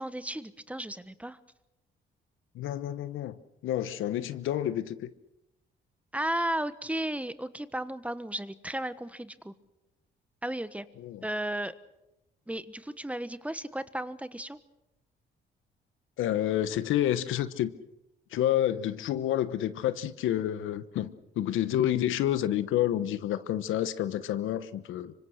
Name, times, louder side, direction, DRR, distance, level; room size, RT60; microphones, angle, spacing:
voice 1, 0.0-1.4 6.1-9.5 10.4-10.9 11.2-11.7 12.5-14.6, right 1 dB, 5° right, 13 dB, 1.2 m, -34 dB
voice 2, 2.5-5.1 11.0-11.2 16.2-17.7 18.3-25.1, left 12 dB, 85° left, 13 dB, 1.1 m, -29 dB
25.5 x 24.5 x 6.5 m, 0.93 s
cardioid pair, 90°, 20 cm